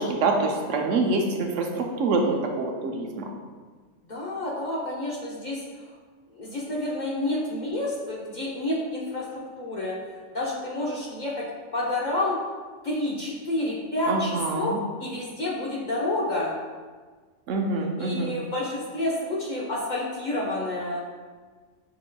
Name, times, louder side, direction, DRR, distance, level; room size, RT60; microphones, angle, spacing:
voice 1, 0.0-3.2 14.1-14.8 17.5-18.3, right 3 dB, 75° right, 2 dB, 0.9 m, -26 dB
voice 2, 4.1-5.6 6.4-9.3 9.6-9.9 10.3-11.4 11.7-12.4 12.8-16.5 18.0-21.0, left 1 dB, 45° left, -5 dB, 0.7 m, -29 dB
5.8 x 3.7 x 2.2 m, 1.5 s
omnidirectional pair, 1.3 m